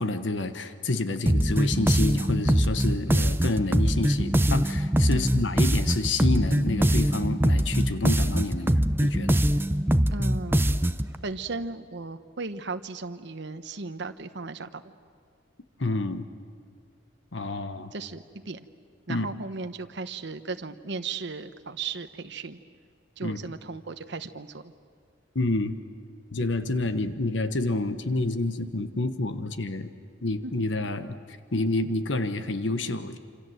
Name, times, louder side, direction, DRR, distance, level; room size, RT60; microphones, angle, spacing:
voice 1, 0.0-9.4 15.8-16.3 17.3-17.9 19.1-19.3 23.2-23.4 25.3-25.8 26.3-29.9 30.2-33.2, left 2 dB, 70° left, 10 dB, 1.3 m, -28 dB
sound 1, 1.3-11.1, equal, 10° right, 0.7 m, -23 dB
voice 2, 10.1-10.6 11.2-14.9 17.9-18.6 19.1-22.6 23.2-24.7 30.4-30.5, right 4 dB, 65° right, 9 dB, 1.1 m, -36 dB
27.5 x 27.0 x 7.9 m, 2.2 s
head